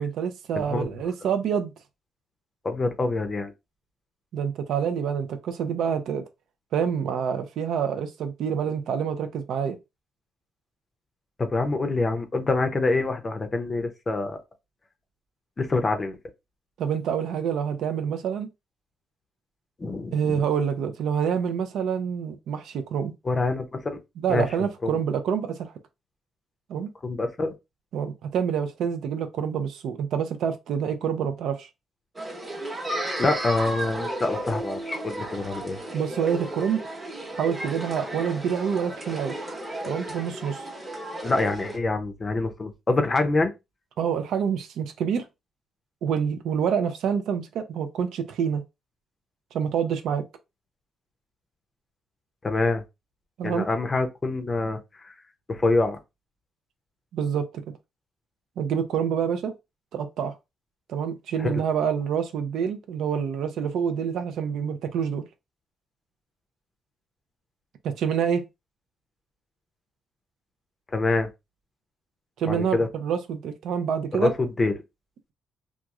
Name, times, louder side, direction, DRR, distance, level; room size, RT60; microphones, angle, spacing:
voice 1, 0.0-1.7 4.3-6.2 6.7-9.8 16.8-18.5 20.1-23.1 24.2-25.7 26.7-26.9 27.9-31.7 35.9-36.8 37.3-39.4 39.8-40.6 44.0-45.3 46.0-48.6 49.5-50.3 53.4-53.7 57.1-57.5 58.6-59.5 59.9-60.3 60.9-65.2 67.8-68.4 72.4-74.3, right 7 dB, 75° right, 0.5 m, -27 dB
voice 2, 0.5-0.9 2.6-3.5 11.4-14.4 15.6-16.2 19.8-20.4 23.3-24.0 24.3-24.9 27.0-27.5 33.2-35.8 41.2-43.5 52.4-52.8 53.4-55.1 55.5-56.0 61.4-61.6 70.9-71.3 72.5-72.9 74.2-74.7, left 3 dB, 25° left, 0.5 m, -26 dB
sound 1, 32.2-41.8, right 1 dB, 20° right, 0.9 m, -34 dB
2.9 x 2.3 x 2.4 m
cardioid pair, 135°, 0 cm